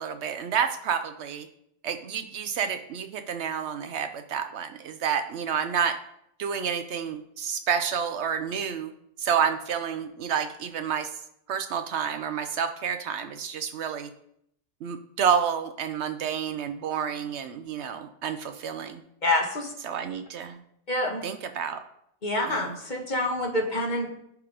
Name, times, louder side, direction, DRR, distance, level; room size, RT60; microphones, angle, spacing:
voice 1, 0.0-1.5 1.8-6.0 6.4-8.9 9.2-11.1 11.5-14.1 14.8-19.0 19.8-20.6 21.2-21.8 22.5-22.8, right 7 dB, 70° right, 8 dB, 0.8 m, -29 dB
voice 2, 19.2-19.7 20.9-21.2 22.2-24.1, left 1 dB, 40° left, 1 dB, 1.3 m, -27 dB
10.5 x 3.7 x 4.9 m, 0.75 s
omnidirectional pair, 1.3 m